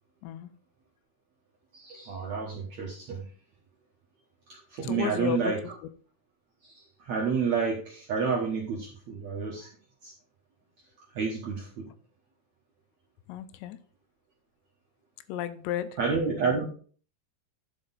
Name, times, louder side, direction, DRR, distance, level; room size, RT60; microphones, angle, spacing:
voice 1, 1.7-3.2 4.7-5.7 6.6-9.7 10.0-10.1 11.1-11.9 16.0-16.6, right 5 dB, 65° right, -2 dB, 1.7 m, -30 dB
voice 2, 4.8-5.5 13.3-13.8 15.3-15.9, left 11 dB, 85° left, 12 dB, 2.7 m, -33 dB
11.0 x 5.0 x 4.0 m, 0.42 s
omnidirectional pair, 5.1 m